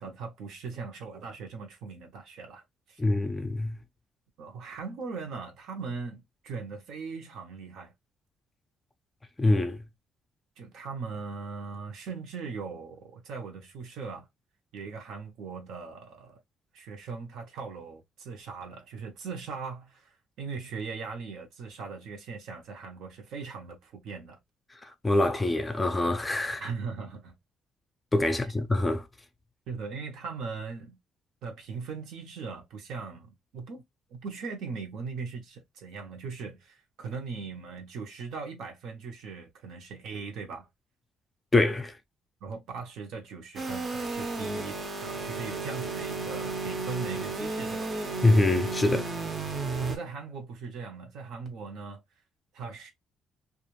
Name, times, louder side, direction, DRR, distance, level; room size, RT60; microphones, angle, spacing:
voice 1, 0.0-2.6 2.9-3.0 4.4-7.9 10.6-14.3 14.7-16.4 16.7-24.4 26.6-27.3 29.7-31.0 31.4-33.8 34.1-40.7 42.4-47.9 49.8-52.0 52.5-52.9, right 5 dB, 75° right, 0.8 m, -39 dB
voice 2, 3.0-3.8 9.4-9.8 24.8-26.7 28.1-29.0 41.5-41.9 48.2-49.1, left 2 dB, 15° left, 0.4 m, -25 dB
sound 1, 43.6-50.0, right 3 dB, 35° right, 0.6 m, -33 dB
2.4 x 2.3 x 3.0 m
cardioid pair, 145°, 0 cm